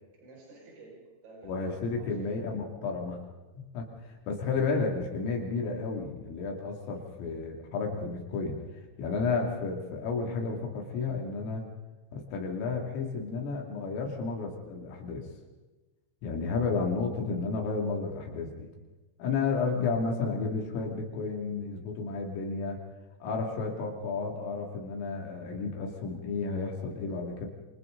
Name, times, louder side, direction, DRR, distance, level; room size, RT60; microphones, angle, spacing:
voice 1, 0.2-2.4 19.4-19.8, right 3 dB, 65° right, -3 dB, 8.2 m, -51 dB
voice 2, 1.4-3.2 3.6-11.7 12.1-15.2 16.2-18.7 19.2-22.8 23.2-27.5, left 4 dB, 80° left, 1 dB, 5.3 m, -32 dB
29.0 x 28.0 x 4.0 m, 1.2 s
omnidirectional pair, 5.8 m